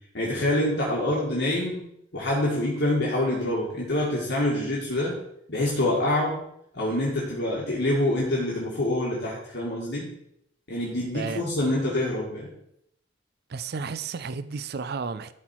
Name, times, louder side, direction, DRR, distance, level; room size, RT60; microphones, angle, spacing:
voice 1, 0.1-1.8 2.1-5.1 5.5-6.4 6.7-10.1 10.7-12.5, left 1 dB, 60° left, -4 dB, 1.8 m, -26 dB
voice 2, 11.1-11.8 13.5-15.3, right 5 dB, 55° right, 13 dB, 0.5 m, -33 dB
12.0 x 4.4 x 4.4 m, 0.75 s
head